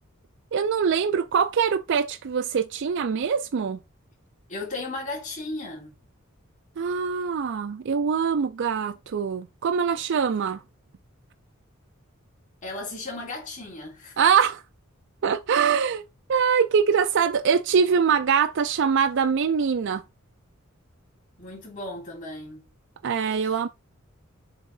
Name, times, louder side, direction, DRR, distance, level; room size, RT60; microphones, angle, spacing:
voice 1, 0.5-3.8 6.8-10.6 14.2-14.6 15.2-16.0 16.3-20.0 23.0-23.7, right 6 dB, 60° right, 0.4 m, -23 dB
voice 2, 4.5-6.0 12.6-14.2 21.4-22.7 23.3-23.7, left 2 dB, 40° left, 3.3 m, -36 dB
7.0 x 3.6 x 5.5 m
head